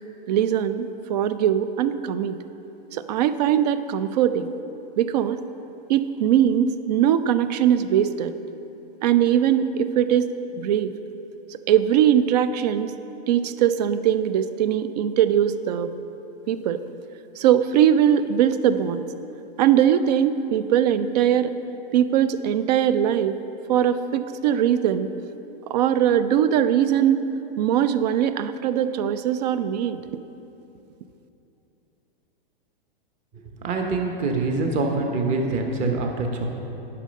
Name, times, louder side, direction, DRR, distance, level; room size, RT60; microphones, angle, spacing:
voice 1, 0.3-2.4 2.9-4.5 5.0-5.4 5.9-8.3 9.0-10.3 10.5-11.0 11.7-12.9 13.3-15.9 16.5-16.8 17.4-19.0 19.6-21.5 21.9-23.4 23.7-25.1 25.7-27.2 27.6-30.0, right 10 dB, 45° right, 12 dB, 0.4 m, -21 dB
voice 2, 33.3-36.5, right 3 dB, 25° right, 3 dB, 0.9 m, -25 dB
10.0 x 5.5 x 5.2 m, 2.9 s
hypercardioid pair, 140°, 29 cm